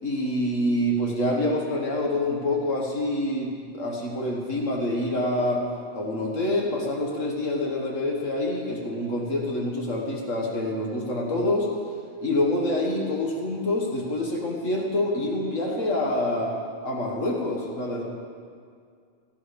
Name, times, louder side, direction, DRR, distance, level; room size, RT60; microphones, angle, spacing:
voice 1, 0.0-5.6 5.9-11.7 12.2-16.6 16.8-18.0, left 1 dB, 80° left, -1 dB, 2.1 m, -26 dB
16.5 x 13.5 x 5.3 m, 2.2 s
omnidirectional pair, 1.3 m